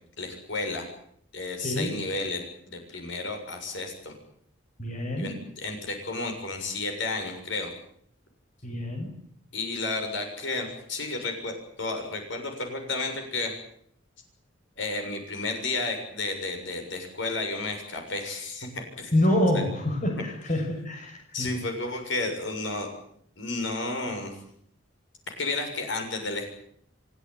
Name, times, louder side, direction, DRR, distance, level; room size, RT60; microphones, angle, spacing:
voice 1, 0.2-0.9 1.3-2.4 2.7-4.1 5.1-7.7 9.5-13.5 14.8-19.1 19.5-19.6 20.1-20.2 21.3-22.9 23.4-24.3 25.4-26.5, left 3 dB, 65° left, 4 dB, 7.0 m, -32 dB
voice 2, 1.6-2.0 4.8-5.4 8.6-9.1 19.1-21.5, left 1 dB, 40° left, 2 dB, 6.5 m, -27 dB
28.0 x 16.5 x 9.5 m, 0.67 s
head